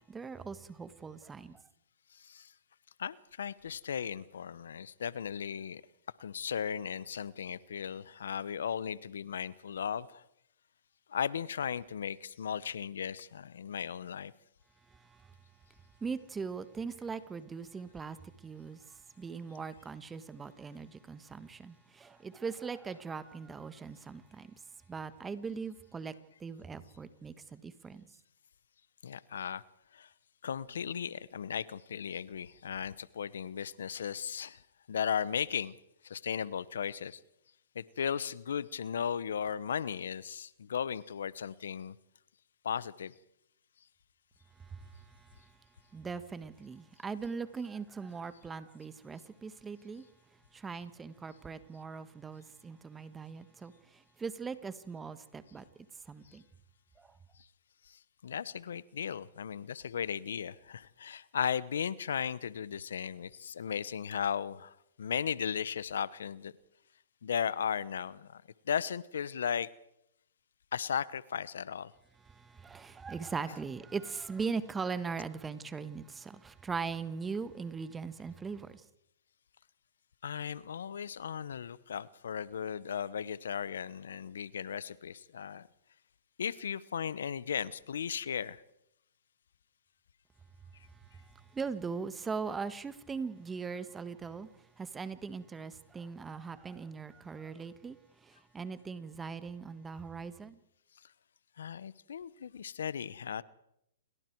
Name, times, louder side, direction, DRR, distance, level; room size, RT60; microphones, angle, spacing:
voice 1, 0.1-1.6 16.0-18.2 18.4-24.5 24.9-26.1 26.4-28.1 44.7-44.8 45.9-50.0 50.5-55.6 56.1-56.4 57.0-57.1 72.3-78.8 91.5-94.5 94.8-98.0 98.2-100.6, right 5 dB, 15° right, 1.5 m, -40 dB
voice 2, 2.1-2.5 3.0-5.8 6.2-10.2 11.1-14.3 29.0-29.6 29.9-30.1 30.4-34.6 34.9-35.8 36.0-37.2 37.7-41.9 42.6-43.1 57.9-66.5 67.2-69.7 70.7-71.9 80.2-85.7 86.4-88.6 101.6-103.4, left 8 dB, 75° left, 1.0 m, -36 dB
28.5 x 23.0 x 4.7 m
hypercardioid pair, 125°, 0 cm